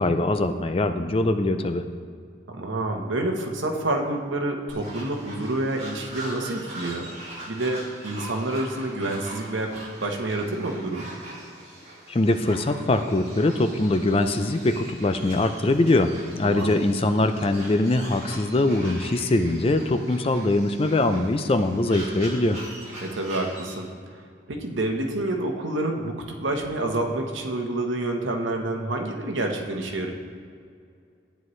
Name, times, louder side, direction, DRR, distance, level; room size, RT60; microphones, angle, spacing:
voice 1, 0.0-1.9 12.1-22.6, left 2 dB, 30° left, 8 dB, 0.4 m, -22 dB
voice 2, 2.5-7.1 7.5-9.7 10.0-11.1 16.4-16.8 23.0-23.9 24.5-30.1, right 2 dB, 80° right, 2 dB, 1.1 m, -28 dB
sound 1, 4.7-23.8, right 1 dB, 35° right, 2.1 m, -42 dB
12.0 x 9.2 x 3.2 m, 2.3 s
head